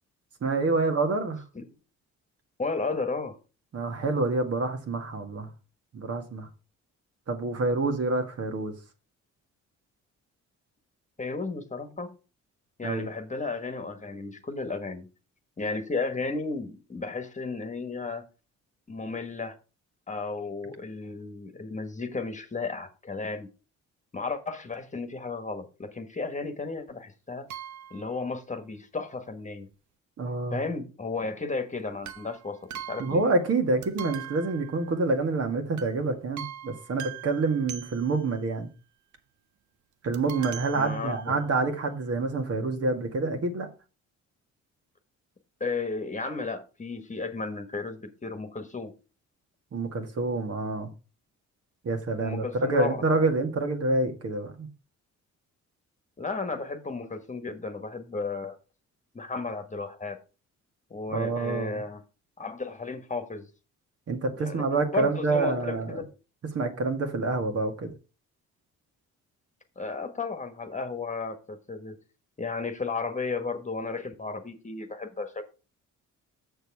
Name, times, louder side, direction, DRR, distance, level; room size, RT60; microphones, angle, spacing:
voice 1, 0.4-1.4 3.7-5.5 5.9-6.5 7.3-8.7 12.8-13.1 30.2-30.6 33.0-38.7 40.0-43.7 49.7-50.9 51.8-54.7 61.1-61.8 64.1-66.0 66.5-67.9, right 3 dB, 50° right, 1.9 m, -27 dB
voice 2, 2.6-3.4 11.2-12.1 12.8-15.1 15.6-18.2 18.9-19.6 20.1-23.5 24.1-27.5 27.9-29.7 30.5-32.6 32.9-33.2 40.7-41.4 45.6-48.9 52.2-53.2 56.2-58.6 59.1-60.2 60.9-62.0 62.4-63.5 64.3-66.1 69.8-72.0 72.4-75.4, left 3 dB, 25° left, 1.4 m, -34 dB
sound 1, 27.5-28.2 32.0-33.6 33.8-35.3 35.8-36.0 36.4-38.4 40.1-41.6 42.3-42.4 42.6-42.7, right 10 dB, 75° right, 0.9 m, -42 dB
6.9 x 6.5 x 4.7 m
cardioid pair, 90°, 30 cm